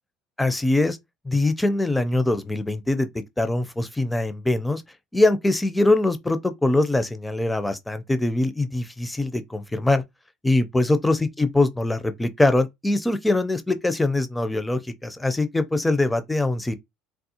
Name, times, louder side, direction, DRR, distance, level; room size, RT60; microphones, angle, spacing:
voice 1, 0.4-1.0 1.2-4.8 5.1-10.0 10.4-16.7, left 2 dB, 10° left, 0.4 m, -23 dB
3.4 x 2.3 x 2.8 m
supercardioid pair, 100°, 0 cm